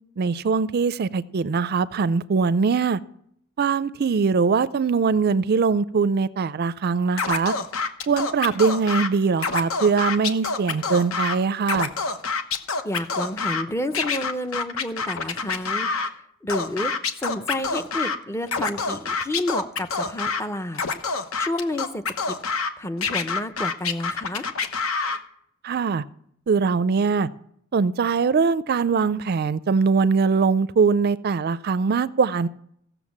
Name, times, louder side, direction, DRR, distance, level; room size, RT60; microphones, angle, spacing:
voice 1, 0.2-3.0 3.6-7.5 8.1-11.9 25.6-26.0 26.5-27.3 27.7-32.5, right 5 dB, 50° right, 0.4 m, -22 dB
Scratching (performance technique), 7.2-9.1 9.4-11.4 11.6-13.6 13.9-16.1 16.5-18.2 18.5-20.4 20.7-22.7 23.0-25.2, left 4 dB, 80° left, 1.0 m, -26 dB
voice 2, 12.8-15.9 16.4-16.9 17.2-22.4 22.8-24.5, left 1 dB, 15° left, 0.6 m, -30 dB
15.5 x 7.0 x 7.2 m
head